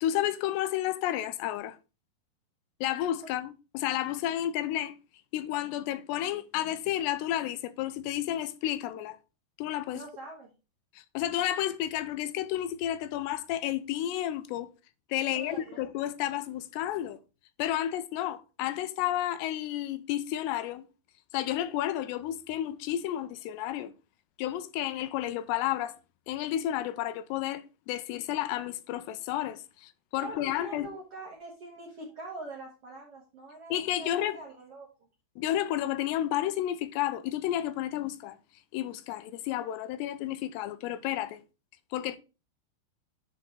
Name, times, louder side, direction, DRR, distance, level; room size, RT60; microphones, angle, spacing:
voice 1, 0.0-1.8 2.8-5.0 5.3-9.2 9.6-10.0 11.0-14.7 15.1-17.2 17.6-20.8 21.3-23.9 24.4-26.0 26.3-30.9 33.7-34.4 35.4-38.4 38.7-41.4 41.9-42.2, left 12 dB, 85° left, 2.7 m, -31 dB
voice 2, 9.9-10.5 15.1-15.8 30.2-34.9, right 2 dB, 60° right, 1.5 m, -44 dB
10.0 x 3.9 x 4.0 m
omnidirectional pair, 4.9 m